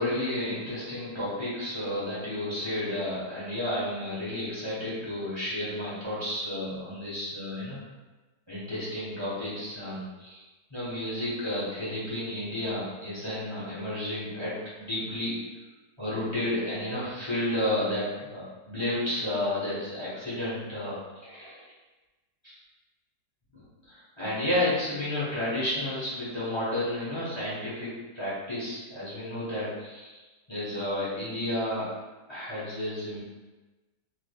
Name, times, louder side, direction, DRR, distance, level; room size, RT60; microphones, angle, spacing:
voice 1, 0.0-7.8 8.5-10.4 10.7-15.3 16.0-21.6 22.4-22.5 23.5-30.2 30.5-31.9 32.3-33.2, left 1 dB, 25° left, -10 dB, 0.7 m, -32 dB
3.3 x 3.2 x 2.2 m, 1.2 s
omnidirectional pair, 1.8 m